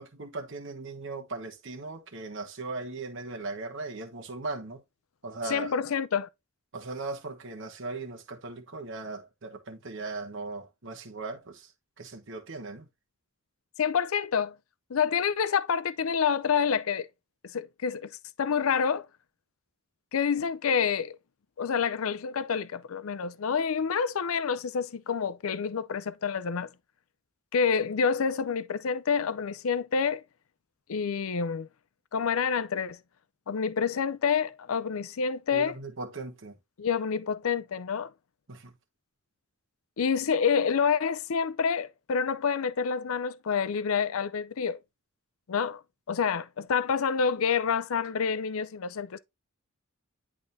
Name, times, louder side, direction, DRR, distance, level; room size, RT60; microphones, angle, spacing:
voice 1, 0.0-4.8 5.2-5.8 6.7-11.7 12.0-12.8 35.5-36.5 38.5-38.7, right 3 dB, 60° right, 1.3 m, -38 dB
voice 2, 5.5-6.3 13.8-14.6 14.9-17.1 17.5-18.1 18.4-19.1 20.1-21.2 21.6-26.7 27.5-30.2 30.9-31.7 32.1-33.0 33.5-35.8 36.8-38.1 40.0-44.8 45.5-45.8 46.1-49.2, left 6 dB, 75° left, 0.5 m, -28 dB
10.5 x 3.7 x 2.6 m
head